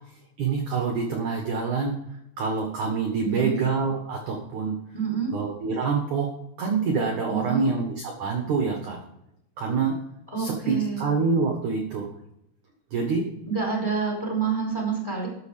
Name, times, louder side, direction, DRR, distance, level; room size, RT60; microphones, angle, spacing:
voice 1, 0.4-1.9 2.4-4.8 5.3-6.3 6.6-9.0 9.6-10.0 10.4-12.1 12.9-13.3, right 5 dB, 60° right, 2 dB, 2.3 m, -26 dB
voice 2, 3.2-3.6 4.9-5.3 7.3-7.7 10.3-11.1 13.5-15.3, right 6 dB, 5° left, 0 dB, 3.6 m, -27 dB
13.0 x 6.8 x 5.0 m, 0.79 s
omnidirectional pair, 5.3 m